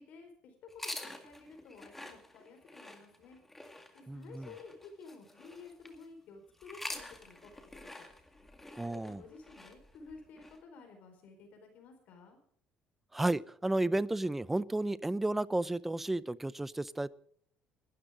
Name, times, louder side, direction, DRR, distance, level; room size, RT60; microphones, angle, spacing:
voice 1, 0.0-3.4 3.9-8.1 8.8-12.4, left 4 dB, 60° left, 4 dB, 4.6 m, -53 dB
sound 1, 0.7-6.1 6.6-10.6, left 1 dB, 10° left, 2.0 m, -47 dB
voice 2, 4.1-4.5 8.8-9.2 13.1-17.1, right 2 dB, 10° right, 19 dB, 0.5 m, -32 dB
21.0 x 12.5 x 3.8 m, 0.64 s
cardioid pair, 145°, 3 cm